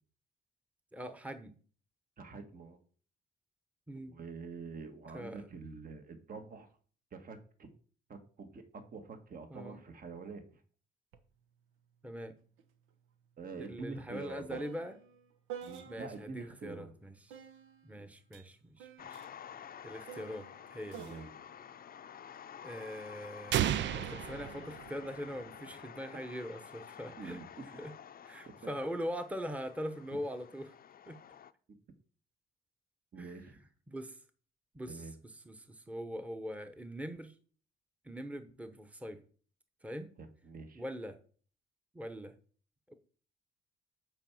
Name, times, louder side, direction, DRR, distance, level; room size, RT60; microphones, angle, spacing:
voice 1, 0.9-1.5 3.9-4.2 5.1-5.5 9.5-9.8 12.0-12.3 13.6-15.0 15.9-17.4 17.8-19.2 19.8-21.0 22.6-27.4 27.8-27.9 28.2-30.7 31.1-31.2 33.2-33.3 33.9-34.2 34.7-37.3 38.0-39.2 39.8-40.1 40.7-41.2 41.9-42.3 42.9-43.0, equal, 5° right, 8 dB, 1.0 m, -42 dB
voice 2, 2.2-2.8 3.9-6.7 7.1-7.7 8.1-10.6 13.4-14.6 15.6-16.9 17.9-18.1 21.0-21.3 27.2-27.5 28.4-28.5 33.1-33.6 34.9-35.1 40.2-40.8, right 4 dB, 45° right, 7 dB, 1.6 m, -46 dB
sound 1, 11.1-11.3 11.6-16.4 17.3-22.8 23.7-24.1, right 9 dB, 85° right, 1.1 m, -51 dB
sound 2, 19.0-31.5, left 9 dB, 45° left, 0.6 m, -51 dB
sound 3, 23.5-25.4, right 11 dB, 65° right, 0.5 m, -33 dB
9.0 x 4.7 x 7.2 m, 0.43 s
cardioid pair, 90°, 20 cm